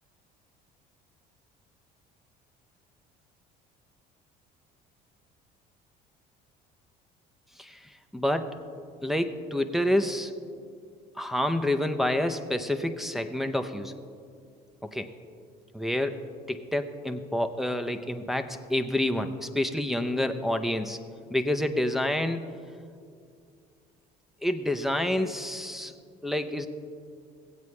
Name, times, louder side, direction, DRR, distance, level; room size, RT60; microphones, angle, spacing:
voice 1, 7.6-8.6 9.0-10.3 11.2-13.9 14.9-15.1 15.7-21.0 21.3-22.5 24.4-25.9 26.2-26.7, left 1 dB, ahead, 5 dB, 0.6 m, -28 dB
16.5 x 8.2 x 3.2 m, 2.3 s
supercardioid pair, 80°, 19 cm